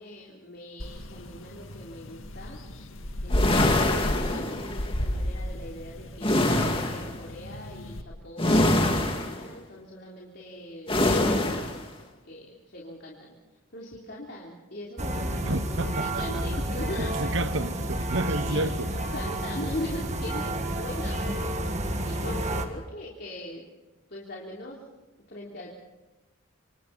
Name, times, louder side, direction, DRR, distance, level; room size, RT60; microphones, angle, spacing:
voice 1, 0.0-2.6 3.2-12.0 12.2-13.4 13.7-15.6 16.0-17.3 17.6-17.8 18.5-18.7 19.1-21.5 22.0-23.6 24.1-24.8 25.3-25.7, left 1 dB, 50° left, 3.5 m, -41 dB
sound 1, 0.8-8.0, equal, 75° left, 2.0 m, -33 dB
sound 2, 3.3-4.9 6.2-7.2 8.4-9.5 10.9-11.8, left 1 dB, 25° left, 2.4 m, -24 dB
sound 3, 15.0-22.7, right 1 dB, 35° right, 1.9 m, -30 dB
voice 2, 15.4-16.4 17.0-18.9, right 2 dB, 65° right, 1.2 m, -31 dB
27.0 x 26.5 x 4.3 m
head